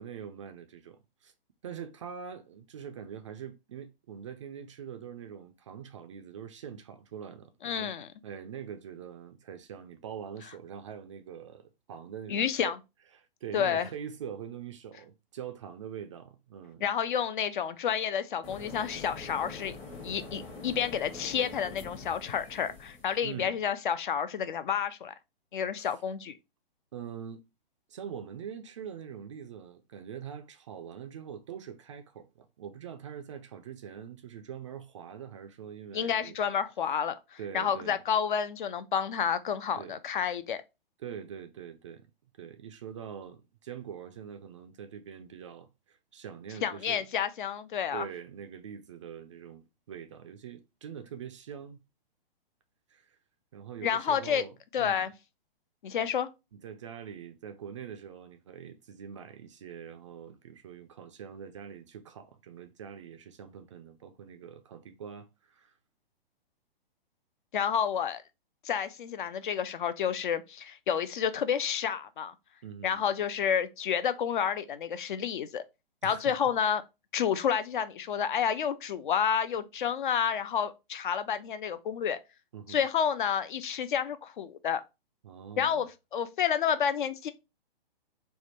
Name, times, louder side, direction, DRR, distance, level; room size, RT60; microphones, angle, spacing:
voice 1, 0.0-1.3 1.6-7.9 8.2-12.7 13.1-16.9 23.2-23.6 25.8-25.9 26.9-27.4 27.9-36.4 37.4-38.0 39.8-40.0 41.0-42.1 42.4-47.1 47.9-51.8 52.9-53.2 53.5-55.1 56.5-65.7 72.6-73.1 76.0-76.3 82.5-82.8 85.2-85.9, right 8 dB, 35° right, 0.4 m, -44 dB
voice 2, 7.6-8.1 12.3-12.8 13.5-13.9 16.8-19.7 20.0-25.1 25.5-26.3 35.9-40.6 46.6-48.1 53.8-54.4 54.7-55.1 55.8-56.3 67.5-68.2 68.6-72.3 72.8-75.6 76.0-76.8 77.1-82.2 82.7-84.8 85.6-87.3, left 8 dB, 55° left, 0.5 m, -30 dB
sound 1, 18.4-23.2, left 3 dB, 20° left, 0.8 m, -44 dB
3.4 x 2.2 x 4.1 m
figure-of-eight pair, 125°, 30 cm